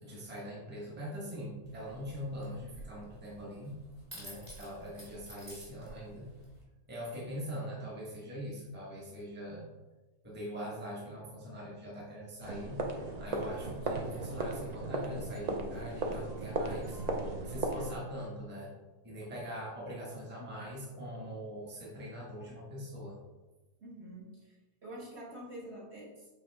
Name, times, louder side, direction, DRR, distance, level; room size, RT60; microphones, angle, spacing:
voice 1, 0.0-3.8 4.1-6.3 6.9-9.6 10.2-18.7 19.0-23.2, equal, 5° right, -5 dB, 1.3 m, -42 dB
sound 1, 1.6-6.6, right 1 dB, 25° right, 1.8 m, -52 dB
sound 2, 12.4-17.9, right 2 dB, 80° right, 0.3 m, -36 dB
voice 2, 23.8-26.3, right 1 dB, 45° right, -6 dB, 1.9 m, -47 dB
8.2 x 3.5 x 3.5 m, 1.2 s
omnidirectional pair, 1.7 m